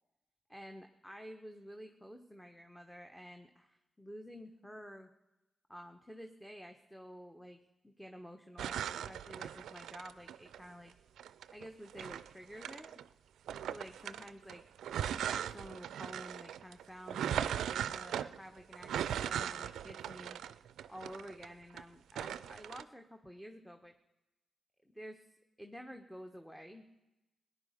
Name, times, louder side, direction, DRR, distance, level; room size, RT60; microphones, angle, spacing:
voice 1, 0.5-5.1 5.7-7.6 7.8-10.9 11.5-12.9 13.7-14.6 15.3-20.4 20.9-23.9 24.8-25.3 25.6-26.8, equal, 5° left, 5 dB, 1.2 m, -50 dB
sound 1, 8.6-10.6 11.2-13.0 13.5-21.8 22.1-22.8, right 10 dB, 85° right, 0.4 m, -39 dB
18.0 x 10.0 x 5.2 m, 0.98 s
supercardioid pair, 45°, 0 cm